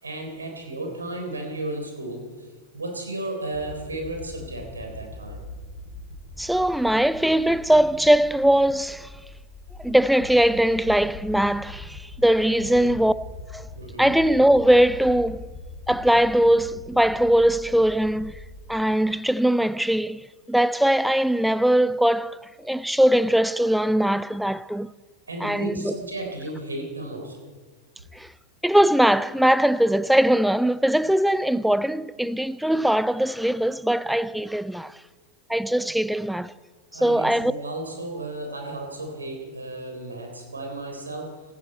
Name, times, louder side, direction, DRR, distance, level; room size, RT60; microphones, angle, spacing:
voice 1, 0.0-2.5 2.7-5.4 12.6-12.9 13.8-14.1 25.3-27.4 36.9-41.4, right 2 dB, 75° right, 3.9 m, -34 dB
sound 1, 3.5-18.8, left 3 dB, 50° left, 2.7 m, -42 dB
voice 2, 6.4-9.1 9.8-13.1 13.5-13.7 14.0-15.5 15.9-18.4 18.7-24.9 25.4-25.9 28.1-28.3 28.6-35.0 35.5-36.5 37.0-37.5, right 1 dB, ahead, 0.4 m, -21 dB
17.0 x 15.5 x 4.4 m
figure-of-eight pair, 90°, 0 cm